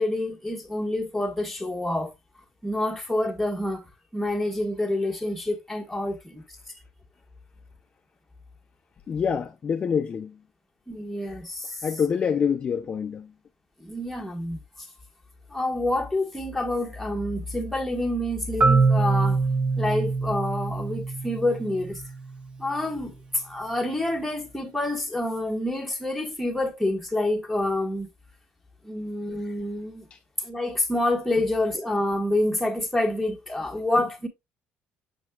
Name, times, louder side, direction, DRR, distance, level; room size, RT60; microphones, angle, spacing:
voice 1, 0.0-2.1 2.6-3.8 4.1-6.4 10.9-11.9 13.8-14.9 15.5-19.4 19.8-22.0 22.6-28.1 28.8-30.1 30.4-34.3, left 1 dB, 5° left, 1.3 m, -27 dB
voice 2, 9.1-10.4 11.8-13.3 30.1-30.2 34.0-34.1, left 7 dB, 30° left, 0.5 m, -26 dB
Marimba xylophone, 18.6-22.5, right 4 dB, 25° right, 0.5 m, -24 dB
6.7 x 6.1 x 2.3 m
cardioid pair, 145°, 4 cm